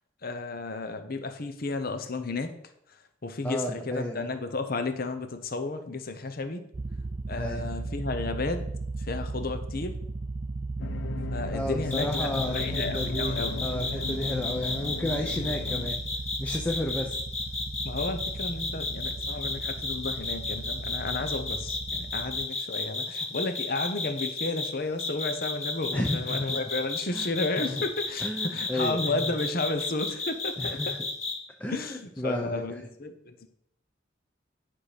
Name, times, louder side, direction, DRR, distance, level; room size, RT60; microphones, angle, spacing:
voice 1, 0.2-2.5 3.2-6.6 7.3-8.6 9.0-9.9 11.3-13.6 17.8-31.0 31.7-33.5, left 3 dB, 50° left, 8 dB, 0.9 m, -33 dB
voice 2, 3.4-4.3 7.4-7.7 11.5-16.0 16.4-17.2 25.9-26.6 27.1-27.8 28.2-29.2 30.6-30.9 31.6-32.8, left 1 dB, 10° left, 1 dB, 0.8 m, -32 dB
sound 1, 6.7-22.5, right 3 dB, 35° right, 0.4 m, -37 dB
sound 2, 10.8-15.9, left 4 dB, 75° left, 0.5 m, -37 dB
sound 3, 11.9-24.7 25.0-31.3, left 3 dB, 35° left, 1.9 m, -32 dB
10.5 x 5.8 x 5.1 m, 0.72 s
head